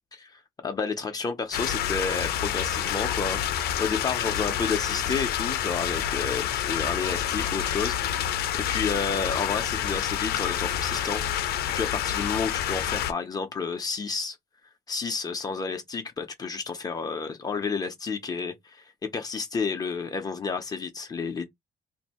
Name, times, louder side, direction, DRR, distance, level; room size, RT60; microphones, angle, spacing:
voice 1, 0.1-11.2 11.7-14.4 14.9-21.5, left 5 dB, 25° left, 0.6 m, -31 dB
sound 1, 1.5-13.1, left 10 dB, 80° left, 0.6 m, -28 dB
2.6 x 2.6 x 4.2 m
cardioid pair, 175°, 16 cm